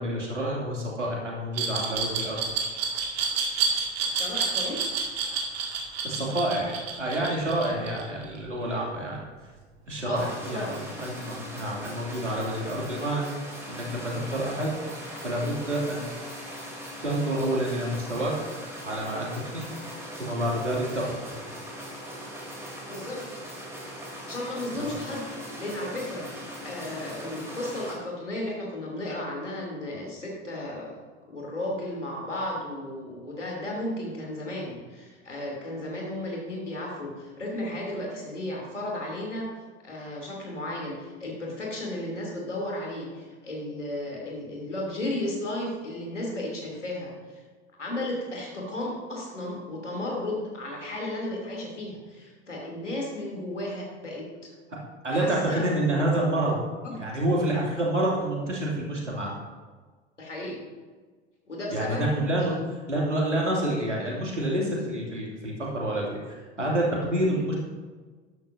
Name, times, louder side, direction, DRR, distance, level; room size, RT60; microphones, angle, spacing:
voice 1, 0.0-2.4 6.0-9.2 9.9-13.2 13.7-14.7 15.2-16.1 17.0-18.5 18.8-19.6 20.2-21.2 24.8-24.9 55.0-56.5 57.0-59.3 61.7-62.6 62.9-67.5, right 1 dB, 85° right, -3 dB, 2.7 m, -28 dB
Glass, 1.5-8.4, right 6 dB, 55° right, 2.3 m, -29 dB
voice 2, 4.1-4.8 10.0-10.7 22.9-23.2 24.2-25.3 25.6-26.2 26.6-31.0 31.3-39.5 39.8-47.4 47.8-54.2 55.1-55.7 56.8-57.0 60.2-60.6 61.5-62.1 62.4-62.6, left 1 dB, 80° left, -2 dB, 3.2 m, -34 dB
sound 1, 10.1-27.9, equal, 5° right, 3.3 m, -40 dB
12.5 x 11.0 x 2.7 m, 1.4 s
figure-of-eight pair, 80°, 36 cm